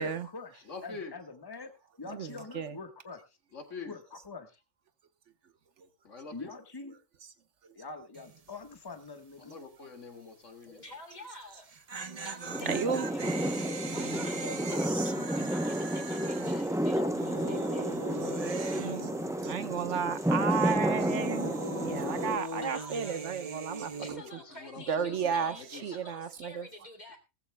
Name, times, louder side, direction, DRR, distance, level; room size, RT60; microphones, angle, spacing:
voice 1, 0.0-3.2 3.9-4.6 6.3-6.9 7.7-9.6 12.6-12.9 14.4-14.6, left 3 dB, 20° left, 1.3 m, -44 dB
voice 2, 0.6-1.1 3.5-4.0 6.0-6.5 9.4-10.8 23.9-26.0, left 4 dB, 85° left, 2.5 m, -45 dB
voice 3, 2.1-2.7 12.7-13.0 18.7-19.1 19.4-21.5 21.8-24.2 24.9-25.5 25.8-26.7, right 7 dB, 75° right, 1.3 m, -33 dB
sound 1, 8.1-8.5 8.7-8.8 11.5-19.9 20.1-24.1, right 3 dB, 35° right, 0.8 m, -40 dB
voice 4, 10.7-11.7 12.2-13.2 13.9-18.0 18.5-19.0 22.6-23.4 23.7-27.2, left 1 dB, 35° left, 3.0 m, -49 dB
sound 2, 12.5-22.4, equal, 5° right, 0.4 m, -31 dB
19.0 x 14.5 x 2.2 m
omnidirectional pair, 1.2 m